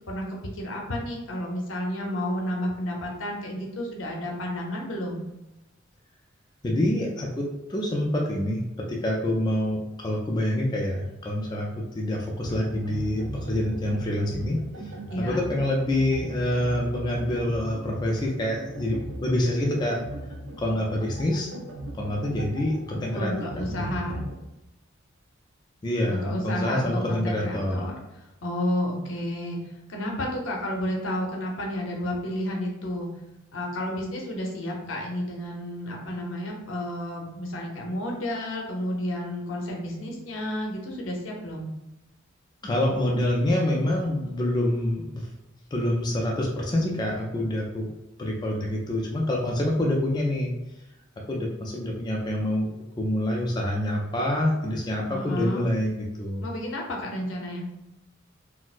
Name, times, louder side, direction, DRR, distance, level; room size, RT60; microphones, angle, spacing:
voice 1, 0.5-5.2 15.1-15.4 23.1-24.2 26.1-27.9 28.4-29.6 29.9-33.1 33.5-41.7 55.1-55.7 56.4-57.7, left 1 dB, 70° left, 0 dB, 0.7 m, -31 dB
voice 2, 6.6-14.9 15.2-20.0 20.6-21.5 22.0-23.3 23.7-23.8 25.8-27.9 42.6-45.3 45.7-47.9 48.2-50.5 51.2-52.7 53.0-56.4, left 1 dB, 20° left, -2 dB, 0.4 m, -26 dB
sound 1, 12.4-24.4, right 1 dB, 70° right, 0.5 m, -38 dB
4.1 x 2.0 x 2.4 m, 0.94 s
head